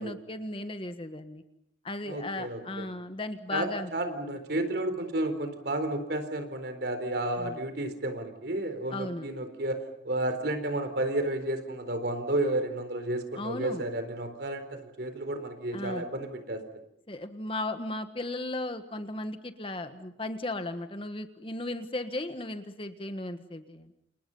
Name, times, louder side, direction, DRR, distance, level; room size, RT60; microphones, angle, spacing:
voice 1, 0.0-1.4 1.8-3.9 7.4-7.6 8.9-9.3 13.4-13.8 15.7-16.0 17.1-23.9, left 2 dB, 30° left, 9 dB, 1.6 m, -36 dB
voice 2, 2.1-2.8 3.5-16.6, right 1 dB, 60° right, 8 dB, 4.1 m, -32 dB
29.5 x 28.5 x 5.6 m, 0.74 s
head